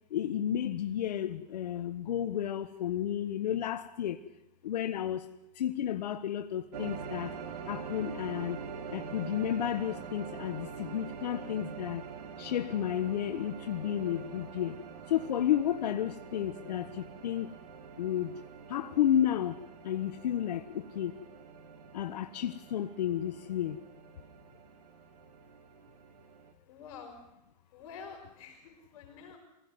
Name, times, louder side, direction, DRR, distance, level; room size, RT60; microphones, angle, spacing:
voice 1, 0.1-4.2 4.6-5.3 5.5-7.4 7.7-8.6 8.9-12.0 12.4-14.8 15.1-17.5 18.0-18.3 18.7-21.2 21.9-23.8, left 10 dB, 75° left, 8 dB, 1.3 m, -32 dB
sound 1, 6.7-26.5, right 6 dB, 70° right, 3.0 m, -45 dB
voice 2, 26.6-27.3 27.7-29.4, left 5 dB, 55° left, 3 dB, 5.4 m, -48 dB
24.0 x 16.5 x 9.5 m, 0.88 s
hypercardioid pair, 145°, 21 cm